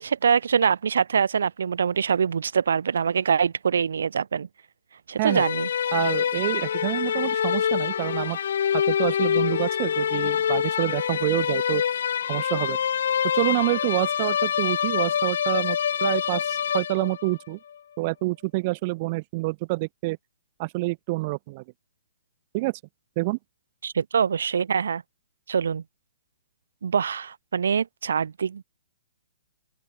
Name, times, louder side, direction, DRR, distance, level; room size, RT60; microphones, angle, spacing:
voice 1, 0.0-4.5 5.1-5.7 23.8-25.0 25.5-25.8 26.8-28.6, right 6 dB, 75° right, 2.1 m, -24 dB
sound 1, 5.3-17.4, left 8 dB, 65° left, 2.3 m, -25 dB
voice 2, 5.9-8.4 8.7-11.8 12.3-12.8 13.3-17.6 18.0-20.2 20.6-21.6 22.5-22.8 23.2-23.4, right 23 dB, 35° right, 3.8 m, -27 dB
open air
hypercardioid pair, 155°, 0 cm